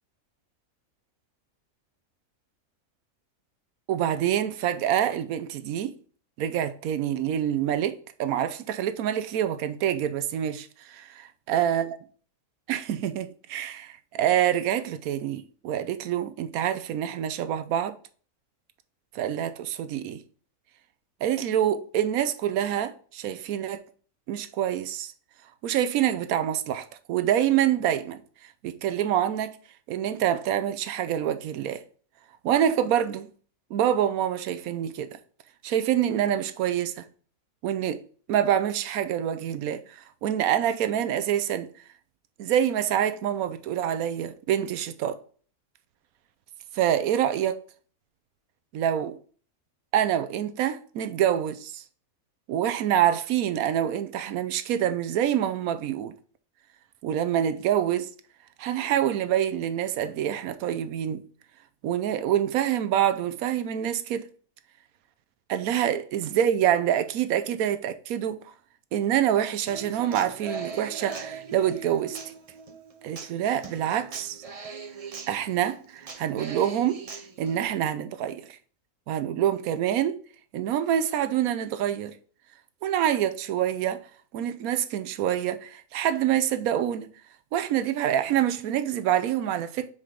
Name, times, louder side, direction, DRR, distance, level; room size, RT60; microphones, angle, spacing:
voice 1, 3.9-5.9 6.4-12.0 12.7-17.9 19.1-20.2 21.2-23.8 24.3-25.1 25.6-28.2 28.6-29.6 29.9-31.8 32.4-33.3 33.7-35.2 35.6-37.0 37.6-38.0 38.3-41.7 42.4-45.2 46.7-47.6 48.7-49.2 49.9-51.8 52.5-56.1 57.0-58.1 58.6-61.2 61.8-64.2 65.5-68.4 68.9-72.2 73.0-74.4 75.3-77.0 77.4-78.6 79.1-80.2 80.5-82.1 82.8-84.0 84.3-87.1 87.5-89.9, right 10 dB, 85° right, 1.1 m, -26 dB
Human voice / Acoustic guitar, 69.7-77.7, right 5 dB, 40° right, 0.5 m, -41 dB
5.7 x 4.9 x 3.8 m
omnidirectional pair, 1.5 m